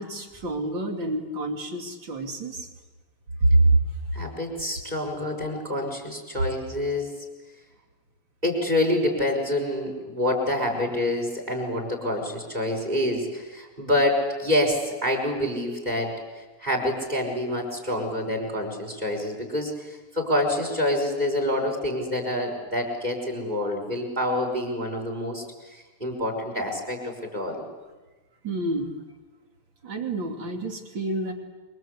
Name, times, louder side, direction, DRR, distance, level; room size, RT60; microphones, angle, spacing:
voice 1, 0.0-2.7 3.4-3.8 28.4-29.0 29.8-31.3, right 2 dB, 35° right, 3 dB, 2.9 m, -25 dB
voice 2, 4.1-7.2 8.4-16.2 16.6-19.7 20.1-25.4 26.0-27.6, left 1 dB, 10° right, 3 dB, 5.5 m, -27 dB
27.5 x 24.5 x 8.3 m, 1.2 s
omnidirectional pair, 4.6 m